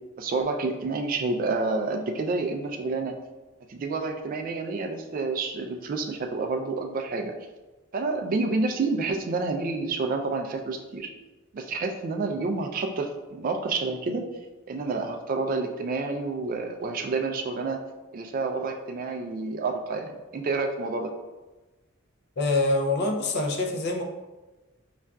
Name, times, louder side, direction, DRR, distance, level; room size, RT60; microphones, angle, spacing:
voice 1, 0.2-3.1 3.7-7.3 7.9-11.1 11.5-14.2 14.7-17.8 18.1-21.1, right 3 dB, 40° right, 4 dB, 0.3 m, -29 dB
voice 2, 22.4-24.0, left 2 dB, 50° left, 3 dB, 0.5 m, -25 dB
5.3 x 2.4 x 2.2 m, 1.2 s
head